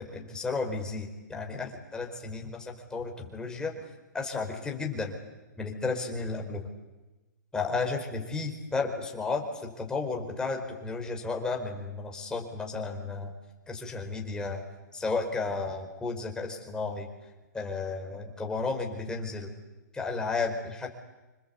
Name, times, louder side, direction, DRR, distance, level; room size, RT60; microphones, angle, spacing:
voice 1, 0.0-3.7 4.1-5.2 5.6-6.7 7.5-13.3 13.7-14.7 14.9-17.1 17.5-19.5 19.9-20.9, left 4 dB, 5° left, 1 dB, 4.7 m, -33 dB
27.0 x 26.5 x 8.4 m, 1.1 s
hypercardioid pair, 145°, 10 cm